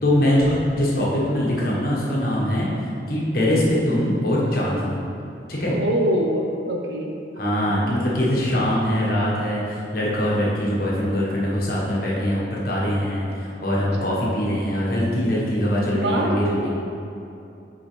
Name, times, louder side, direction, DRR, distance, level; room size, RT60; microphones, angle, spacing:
voice 1, 0.0-2.7 3.1-5.0 5.5-5.7 7.4-16.7, left 1 dB, 50° left, -5 dB, 1.5 m, -22 dB
voice 2, 5.7-7.1 7.6-7.8 13.8-14.2 15.9-16.7, right 1 dB, 65° right, 1 dB, 0.9 m, -24 dB
8.6 x 4.8 x 3.4 m, 2.6 s
head